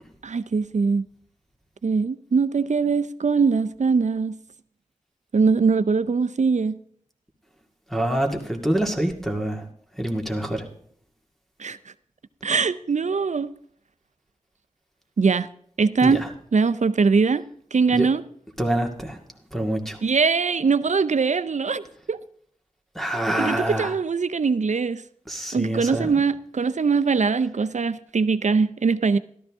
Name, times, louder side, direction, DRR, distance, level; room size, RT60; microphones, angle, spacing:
voice 1, 0.2-1.0 1.8-4.4 5.3-6.8 11.6-11.8 12.4-13.5 15.2-15.5 15.8-16.2 16.5-17.4 17.7-18.2 20.0-22.2 23.4-25.0 25.5-29.2, right 5 dB, 65° right, 0.6 m, -22 dB
voice 2, 7.9-9.7 10.0-10.6 16.0-16.3 17.9-18.1 18.6-19.2 19.5-20.0 23.0-24.0 25.3-26.2, right 1 dB, ahead, 2.1 m, -26 dB
13.5 x 12.5 x 3.6 m
cardioid pair, 45°, 13 cm